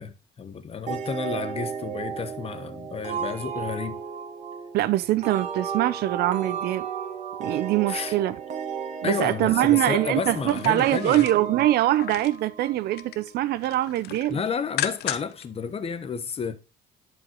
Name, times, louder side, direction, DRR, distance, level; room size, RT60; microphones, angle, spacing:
voice 1, 0.0-4.0 7.9-8.2 9.0-11.3 14.3-16.6, left 6 dB, 35° left, 1.1 m, -31 dB
sound 1, 0.9-13.3, right 7 dB, 40° right, 1.9 m, -34 dB
voice 2, 4.7-6.9 7.4-8.4 9.0-14.4, right 14 dB, 70° right, 0.6 m, -23 dB
sound 2, 10.3-12.4 12.8-13.3 13.6-15.5 15.8-15.9, left 12 dB, 75° left, 0.8 m, -35 dB
11.5 x 5.1 x 3.0 m
cardioid pair, 110°, 17 cm